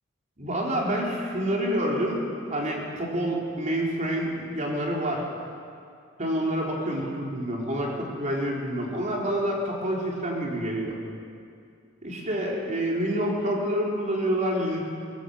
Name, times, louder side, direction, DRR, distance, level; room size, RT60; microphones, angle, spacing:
voice 1, 0.4-5.2 6.2-11.0 12.0-14.8, equal, 40° right, -2 dB, 4.1 m, -28 dB
22.5 x 17.5 x 8.0 m, 2.4 s
head